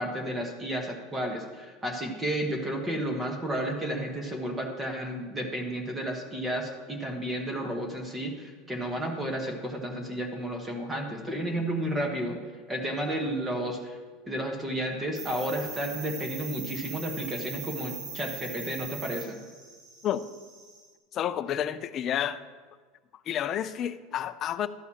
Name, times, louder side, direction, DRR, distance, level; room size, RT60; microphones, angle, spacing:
voice 1, 0.0-12.4 12.7-14.0 14.3-19.4, right 1 dB, 10° right, 2 dB, 1.2 m, -32 dB
sound 1, 15.1-20.9, right 5 dB, 55° right, 1.5 m, -41 dB
voice 2, 21.1-22.4 23.3-24.7, left 10 dB, 35° left, 12 dB, 0.4 m, -30 dB
12.5 x 9.2 x 2.9 m, 1.5 s
supercardioid pair, 145°, 0 cm